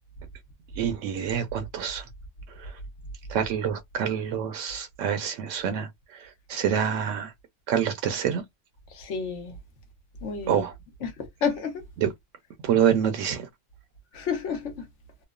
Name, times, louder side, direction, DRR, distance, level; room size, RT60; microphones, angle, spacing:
voice 1, 0.8-2.0 2.6-2.7 3.3-7.3 7.7-8.4 10.5-10.7 12.0-12.1 12.6-13.5, right 8 dB, 85° right, 0.9 m, -27 dB
voice 2, 8.9-9.5 10.2-10.6 11.0-11.8 14.1-14.8, left 6 dB, 75° left, 1.1 m, -30 dB
3.0 x 2.1 x 2.2 m
omnidirectional pair, 1.3 m